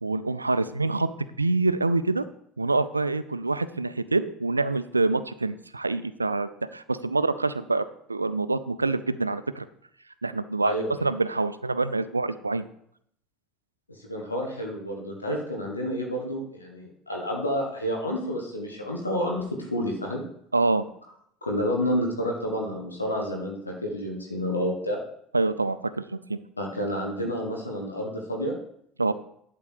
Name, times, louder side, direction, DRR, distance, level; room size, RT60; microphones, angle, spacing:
voice 1, 0.0-1.1 1.4-2.2 2.6-9.7 10.2-10.7 11.0-12.7 20.5-20.8 25.3-26.4 29.0-29.1, right 3 dB, 90° right, 14 dB, 0.4 m, -26 dB
voice 2, 10.6-11.1 13.9-20.2 21.4-25.0 26.6-28.5, equal, 90° left, 0 dB, 1.4 m, -29 dB
11.5 x 3.8 x 6.4 m, 0.70 s
figure-of-eight pair, 65°, 0 cm